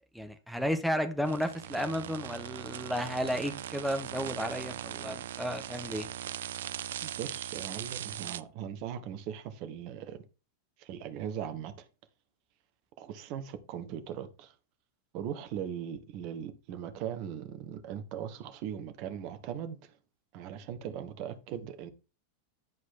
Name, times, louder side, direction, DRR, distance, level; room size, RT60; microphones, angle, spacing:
voice 1, 0.1-6.1, equal, ahead, 1.5 m, -33 dB
sound 1, 1.3-8.4, right 11 dB, 60° right, 0.5 m, -40 dB
voice 2, 7.0-10.2 10.8-11.9 13.0-14.5 15.1-19.9 20.3-21.9, right 9 dB, 45° right, 1.4 m, -39 dB
11.0 x 5.0 x 3.9 m
figure-of-eight pair, 90°, 0 cm